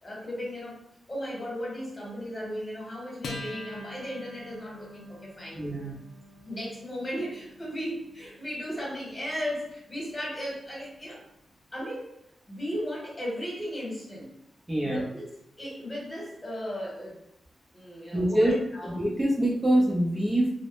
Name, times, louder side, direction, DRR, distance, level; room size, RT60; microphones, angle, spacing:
voice 1, 0.0-0.8 1.1-5.6 6.4-11.2 11.7-12.1 12.5-14.3 14.8-15.3 15.6-17.2 17.7-18.9, equal, 30° left, -4 dB, 1.2 m, -35 dB
Acoustic guitar, 3.2-10.1, left 2 dB, 70° left, 0.4 m, -45 dB
voice 2, 5.5-5.9 14.7-15.0 18.1-18.5 18.8-20.5, right 1 dB, 20° right, -4 dB, 0.7 m, -25 dB
2.1 x 2.0 x 3.0 m, 0.78 s
cardioid pair, 60°, 0 cm